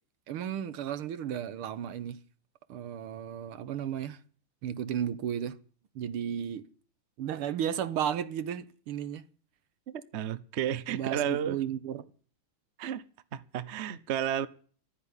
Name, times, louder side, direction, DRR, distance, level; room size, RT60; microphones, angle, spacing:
voice 1, 0.3-2.2 2.7-4.2 4.6-5.5 6.0-6.6 7.2-9.2 10.9-12.1, right 9 dB, 85° right, 1.9 m, -34 dB
voice 2, 9.9-11.6 12.8-13.0 13.3-14.5, right 9 dB, 60° right, 0.7 m, -32 dB
13.0 x 9.7 x 9.9 m
omnidirectional pair, 2.4 m